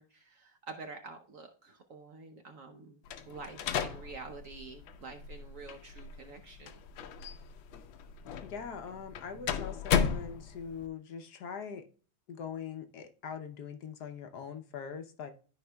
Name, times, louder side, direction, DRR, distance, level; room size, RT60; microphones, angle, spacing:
voice 1, 0.0-6.8, right 4 dB, 55° right, 5 dB, 1.0 m, -48 dB
sound 1, 3.1-10.9, left 7 dB, 85° left, 1.5 m, -35 dB
voice 2, 8.4-11.9 12.3-15.3, left 7 dB, 65° left, 8 dB, 1.2 m, -42 dB
13.0 x 4.8 x 2.2 m, 0.39 s
omnidirectional pair, 2.1 m